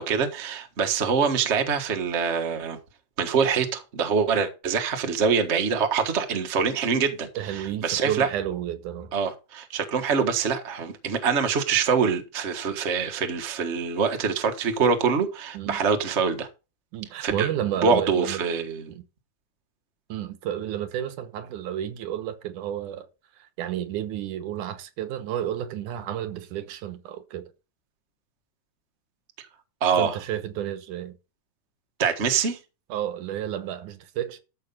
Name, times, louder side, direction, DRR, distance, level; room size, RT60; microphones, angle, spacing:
voice 1, 0.0-2.8 3.2-8.3 9.1-16.5 17.2-17.5 17.8-18.9 29.8-30.2 32.0-32.6, right 6 dB, 45° right, 0.9 m, -24 dB
voice 2, 7.4-9.1 15.5-15.8 16.9-18.4 18.9-19.0 20.1-23.1 23.6-27.5 30.0-31.2 32.9-34.4, right 11 dB, 80° right, 2.5 m, -31 dB
13.0 x 5.8 x 5.4 m
omnidirectional pair, 3.6 m